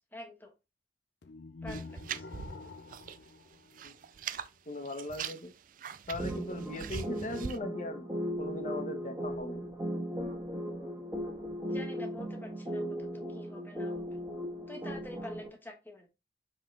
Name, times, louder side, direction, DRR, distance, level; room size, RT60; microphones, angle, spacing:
voice 1, 0.1-0.5 1.6-2.3 11.7-14.1 14.7-16.1, left 1 dB, 10° left, 1.3 m, -47 dB
sound 1, 1.2-4.4, left 3 dB, 75° left, 0.6 m, -47 dB
sound 2, 1.7-3.3 3.5-4.5 4.9-7.6, right 7 dB, 50° right, 0.4 m, -41 dB
voice 2, 4.7-5.5 6.1-8.1 8.4-9.7, left 1 dB, 45° left, 1.0 m, -39 dB
sound 3, 6.2-15.5, equal, 15° right, 1.4 m, -37 dB
7.4 x 3.8 x 3.3 m
head